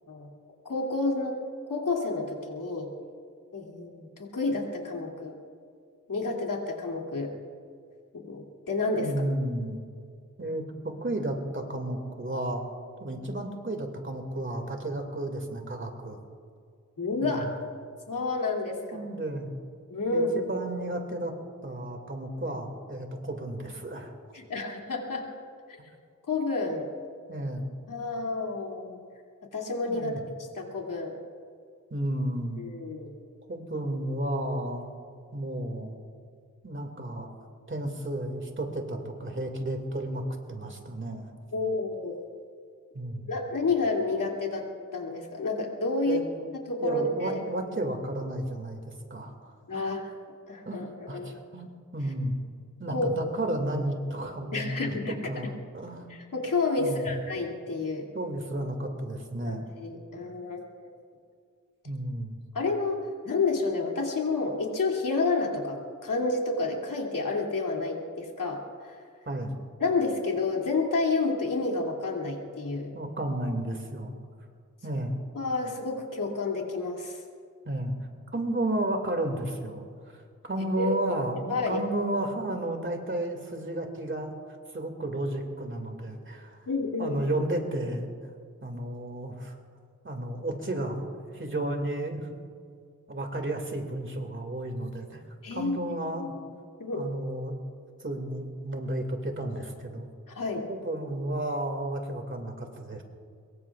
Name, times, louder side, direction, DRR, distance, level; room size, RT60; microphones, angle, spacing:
voice 1, 0.6-1.4 1.7-2.9 3.5-5.4 6.1-7.3 8.1-9.1 17.0-17.5 18.1-19.0 19.9-20.4 24.3-25.3 25.7-25.8 26.3-26.9 27.9-29.0 29.5-30.1 30.5-31.2 32.6-33.1 41.5-42.2 43.3-44.7 44.9-46.2 46.7-47.4 49.7-50.1 50.5-51.3 52.9-53.1 54.5-55.5 56.1-58.1 59.5-60.9 62.5-69.0 69.8-72.9 75.3-77.2 80.8-80.9 81.5-81.8 86.7-87.2 95.4-95.8 96.2-96.4 96.8-97.0 100.3-100.7, left 3 dB, 80° left, -1 dB, 2.8 m, -30 dB
voice 2, 9.0-9.8 10.4-12.6 13.0-16.2 17.1-17.5 18.9-19.5 20.0-21.3 21.6-24.1 27.3-27.7 29.9-30.2 31.9-32.7 33.5-34.9 35.3-35.9 36.6-37.3 37.7-41.3 42.9-43.3 46.1-46.5 46.8-49.9 50.7-50.8 51.1-52.3 52.8-56.1 56.8-57.1 58.1-59.6 61.8-62.4 69.3-69.6 72.9-74.1 74.8-75.2 77.7-78.0 78.3-84.4 84.7-86.7 87.0-88.1 88.6-89.6 90.0-92.3 93.1-95.2 95.5-96.3 96.9-97.6 98.0-100.1 100.7-103.0, right 1 dB, 40° right, 3 dB, 2.3 m, -32 dB
24.0 x 22.0 x 2.5 m, 2.2 s
wide cardioid pair, 90°, 32 cm